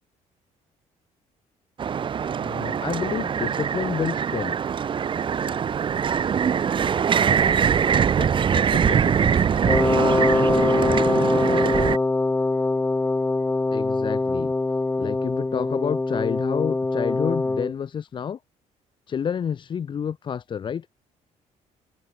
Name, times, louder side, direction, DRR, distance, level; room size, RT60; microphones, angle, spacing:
sound 1, 1.8-12.0, right 7 dB, 35° right, 3.5 m, -23 dB
voice 1, 2.4-4.6 13.7-14.5 15.0-18.4 19.1-20.9, left 7 dB, 35° left, 1.4 m, -29 dB
voice 2, 8.1-10.8, left 11 dB, 55° left, 4.6 m, -39 dB
Wind instrument woodwind instrument, 9.7-17.7, left 2 dB, 15° left, 1.9 m, -23 dB
cardioid pair, 145°, 14 cm